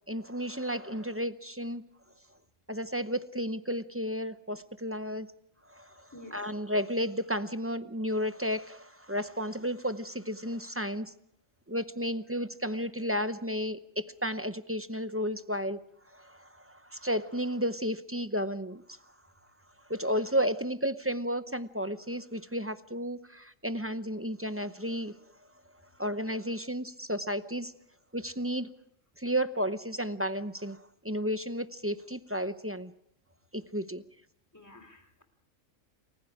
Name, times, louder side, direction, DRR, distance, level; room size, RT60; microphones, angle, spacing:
voice 1, 0.1-1.8 2.7-5.3 5.7-11.1 11.7-15.8 16.1-19.0 19.9-25.1 26.0-27.7 28.1-28.7 29.2-32.9 33.5-34.0, equal, 15° right, 11 dB, 0.6 m, -33 dB
voice 2, 6.1-6.5 34.5-35.2, left 1 dB, 15° left, 6 dB, 3.1 m, -50 dB
30.0 x 20.5 x 4.9 m, 0.75 s
omnidirectional pair, 1.3 m